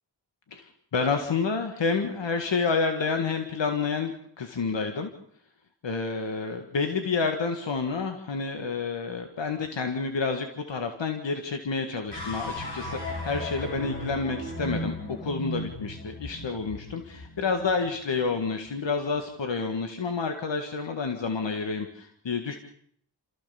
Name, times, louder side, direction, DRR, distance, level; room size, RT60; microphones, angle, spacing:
voice 1, 0.5-5.1 5.8-22.6, left 4 dB, 90° left, 5 dB, 1.9 m, -29 dB
sound 1, 12.1-18.5, left 1 dB, 65° left, 7.1 m, -36 dB
29.0 x 15.0 x 7.1 m, 0.66 s
wide cardioid pair, 70°, 43 cm